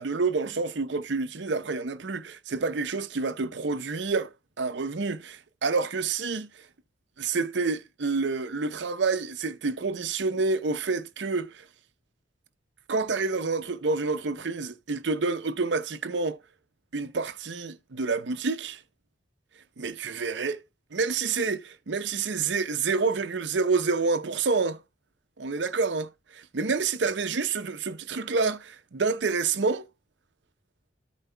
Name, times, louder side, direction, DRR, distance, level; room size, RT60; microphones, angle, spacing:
voice 1, 0.0-4.3 4.6-6.6 7.2-11.6 12.9-16.4 16.9-18.8 19.8-20.6 20.9-24.8 25.4-29.9, right 4 dB, 70° right, 0.7 m, -28 dB
14.0 x 5.2 x 2.2 m
head